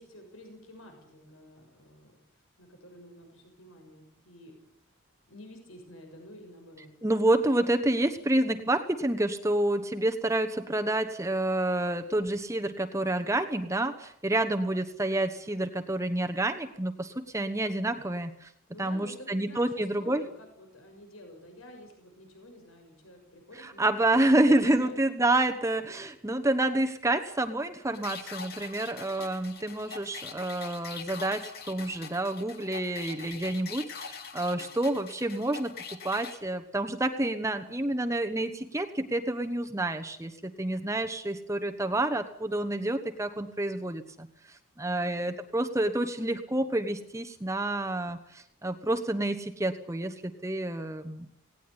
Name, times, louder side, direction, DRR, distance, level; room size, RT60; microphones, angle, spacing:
voice 1, 0.0-4.5 5.3-6.9 18.7-25.0, left 1 dB, 70° left, 4 dB, 6.2 m, -50 dB
voice 2, 7.0-18.5 18.8-20.2 23.6-35.7 36.0-51.3, right 1 dB, 15° right, 6 dB, 1.2 m, -28 dB
sound 1, 27.9-36.4, left 6 dB, 45° left, 2.4 m, -43 dB
18.5 x 18.0 x 9.8 m, 0.73 s
head